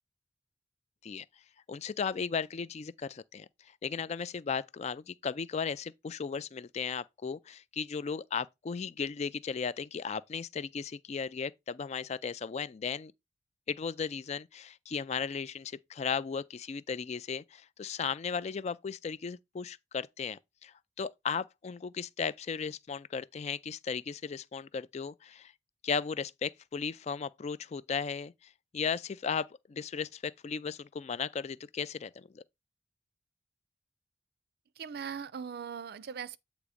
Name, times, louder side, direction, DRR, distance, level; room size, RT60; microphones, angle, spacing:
voice 1, 1.7-3.5 3.8-13.1 13.7-25.5 25.8-28.3 28.7-32.4, left 6 dB, 35° left, 0.3 m, -36 dB
voice 2, 34.8-36.4, right 7 dB, 60° right, 0.4 m, -40 dB
8.1 x 3.0 x 4.9 m
head